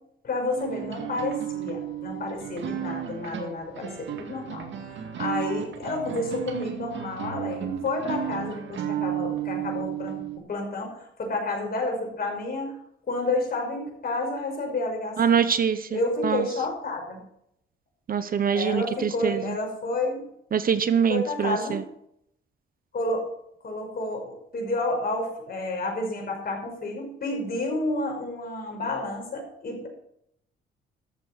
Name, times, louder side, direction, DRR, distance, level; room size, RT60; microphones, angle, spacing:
voice 1, 0.2-10.2 10.5-12.8 13.1-15.4 15.9-17.2 18.5-20.2 21.1-21.8 22.9-23.3 23.6-29.9, left 2 dB, 50° left, 1 dB, 5.5 m, -30 dB
sound 1, 0.6-10.4, right 11 dB, 70° right, 2.0 m, -33 dB
voice 2, 15.2-16.5 18.1-19.6 20.5-21.8, right 7 dB, 45° right, 12 dB, 1.0 m, -24 dB
13.5 x 7.5 x 6.3 m, 0.74 s
cardioid pair, 90°, 20 cm